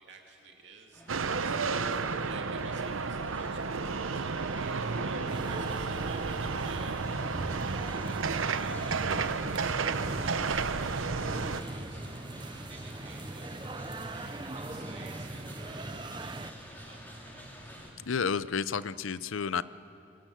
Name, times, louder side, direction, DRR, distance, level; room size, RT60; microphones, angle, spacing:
voice 1, 0.0-9.3 9.8-12.1 12.4-17.8, right 5 dB, 60° right, 1 dB, 2.4 m, -54 dB
sound 1, 0.9-17.9, equal, 10° left, 3.8 m, -48 dB
sound 2, 1.1-11.6, right 4 dB, 85° right, 0.8 m, -32 dB
sound 3, 5.3-16.5, right 2 dB, 25° right, 0.7 m, -40 dB
voice 2, 18.1-19.6, left 6 dB, 80° left, 16 dB, 0.6 m, -31 dB
24.0 x 20.0 x 7.7 m, 2.8 s
head